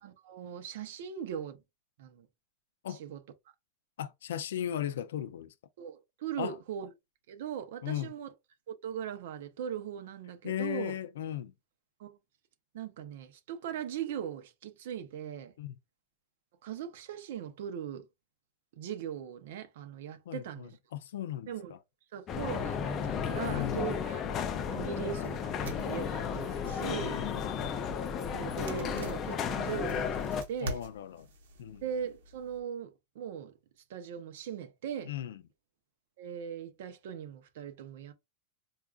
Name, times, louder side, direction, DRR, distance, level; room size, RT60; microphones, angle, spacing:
voice 1, 0.0-1.6 2.0-2.3 2.9-3.2 5.8-6.9 7.3-8.3 8.7-10.9 12.0-12.2 12.7-15.5 16.6-18.0 18.7-20.8 21.5-21.7 22.1-24.2 24.7-27.2 28.3-30.8 31.8-33.5 33.9-35.1 36.2-38.1, right 8 dB, 65° right, 0.7 m, -39 dB
voice 2, 4.0-5.5 6.4-6.6 7.8-8.1 10.4-11.5 15.6-15.8 20.3-21.8 23.4-23.8 27.0-27.4 30.6-31.3 31.6-31.8 35.0-35.4, left 11 dB, 90° left, 0.4 m, -37 dB
sound 1, 22.3-30.4, left 7 dB, 25° left, 0.4 m, -33 dB
sound 2, 25.1-32.6, right 2 dB, 85° right, 1.1 m, -47 dB
4.6 x 2.4 x 2.3 m
supercardioid pair, 170°, 0 cm